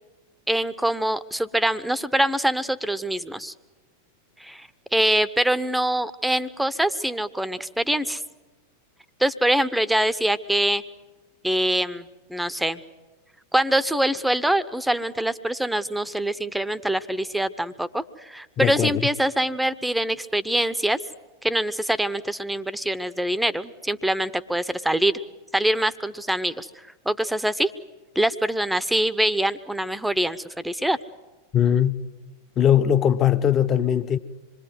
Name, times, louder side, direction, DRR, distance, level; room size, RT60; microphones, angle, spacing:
voice 1, 0.5-3.5 4.4-8.2 9.2-10.8 11.4-12.8 13.5-21.0 21.4-25.1 25.5-26.7 27.0-27.7 28.1-31.0, right 1 dB, 5° right, 1.0 m, -24 dB
voice 2, 18.6-19.0 31.5-32.0 32.6-34.2, left 9 dB, 30° left, 1.1 m, -20 dB
26.5 x 22.5 x 7.9 m
figure-of-eight pair, 90°, 0 cm